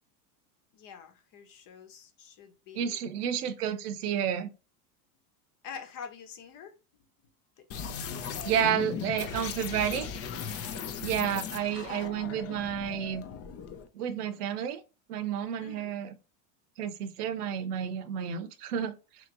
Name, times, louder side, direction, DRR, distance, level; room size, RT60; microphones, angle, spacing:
voice 1, 0.7-3.0 5.6-6.7 7.2-7.6 8.7-8.9 15.6-15.9, left 7 dB, 50° left, 1.0 m, -47 dB
voice 2, 2.7-4.5 8.2-10.1 11.0-13.2 13.9-14.8 15.1-16.1 16.8-19.0, right 9 dB, 85° right, 0.8 m, -31 dB
sound 1, 7.7-13.9, left 7 dB, 35° left, 0.5 m, -38 dB
3.1 x 2.8 x 3.8 m
supercardioid pair, 110°, 45 cm